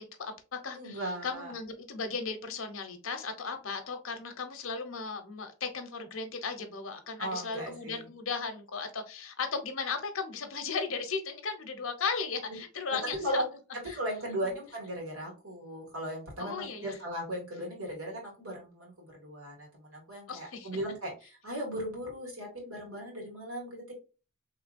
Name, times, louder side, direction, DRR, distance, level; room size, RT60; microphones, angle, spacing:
voice 1, 0.0-13.4 13.9-14.0 16.4-17.0 20.3-20.7, left 5 dB, 65° left, 6 dB, 0.8 m, -36 dB
voice 2, 0.7-1.5 7.2-8.0 13.0-13.4 13.7-23.9, right 1 dB, 80° right, -2 dB, 1.9 m, -37 dB
3.7 x 3.1 x 2.5 m, 0.33 s
head